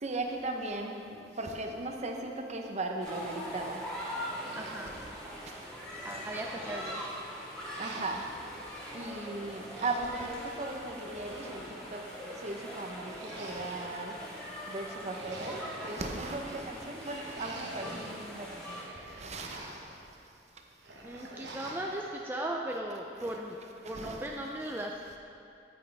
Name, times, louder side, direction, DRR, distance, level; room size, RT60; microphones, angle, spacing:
voice 1, 0.0-3.8 5.4-5.5 7.8-8.4 8.9-11.6 11.9-12.0 12.4-14.1 14.6-18.8 19.1-19.8 23.2-23.3 23.8-24.2, right 2 dB, 40° right, 3 dB, 0.8 m, -37 dB
sound 1, 3.0-18.8, equal, 5° left, 1.9 m, -42 dB
sound 2, 4.4-5.5 5.9-7.2 7.7-8.5 9.5-10.3 11.1-12.0 13.1-14.1 14.9-16.1 16.9-18.2 18.6-19.9 20.8-21.9, right 2 dB, 75° right, 1.1 m, -47 dB
voice 2, 4.5-5.0 6.0-7.0 21.0-25.2, right 1 dB, 10° right, 0 dB, 0.4 m, -37 dB
9.2 x 9.1 x 3.4 m, 2.5 s
head